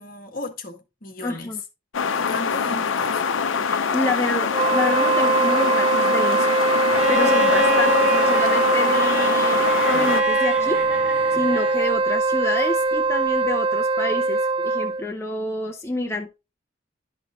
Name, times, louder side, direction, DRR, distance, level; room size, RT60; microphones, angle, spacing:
voice 1, 0.0-1.5 2.1-3.4, left 2 dB, 50° left, 1.6 m, -36 dB
voice 2, 1.2-1.6 3.6-6.6 7.1-16.4, left 2 dB, 15° left, 0.7 m, -28 dB
sound 1, 1.9-10.2, left 6 dB, 90° left, 0.6 m, -24 dB
Wind instrument woodwind instrument, 4.5-15.1, right 4 dB, 25° right, 0.3 m, -21 dB
Bowed string instrument, 6.9-12.0 13.4-13.5, left 3 dB, 5° right, 1.8 m, -26 dB
11.5 x 6.1 x 2.5 m
head